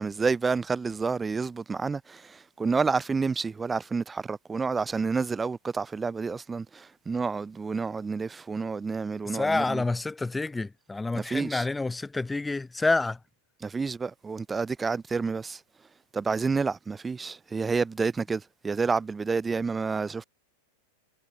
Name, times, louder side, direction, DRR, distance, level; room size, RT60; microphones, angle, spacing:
voice 1, 0.0-9.8 11.1-11.6 13.6-15.6 16.1-20.2, right 4 dB, 15° right, 2.9 m, -29 dB
voice 2, 9.2-13.2, left 3 dB, 10° left, 1.9 m, -28 dB
figure-of-eight pair, 90°, 0 cm